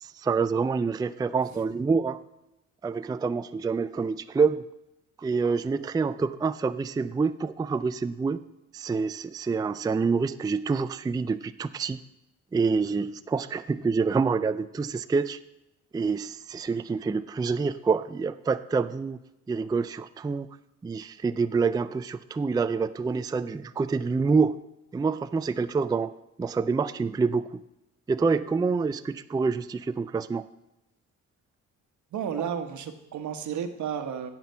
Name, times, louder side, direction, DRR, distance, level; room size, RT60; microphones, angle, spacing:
voice 1, 0.0-2.2 2.8-4.6 5.2-8.4 8.7-12.0 12.5-15.4 15.9-19.2 19.5-20.5 20.8-24.6 24.9-26.1 26.4-27.6 28.1-30.5, right 4 dB, 15° right, 12 dB, 0.3 m, -27 dB
voice 2, 32.1-34.3, right 8 dB, 70° right, 8 dB, 1.2 m, -32 dB
17.0 x 6.1 x 5.6 m, 0.94 s
cardioid pair, 90°, 30 cm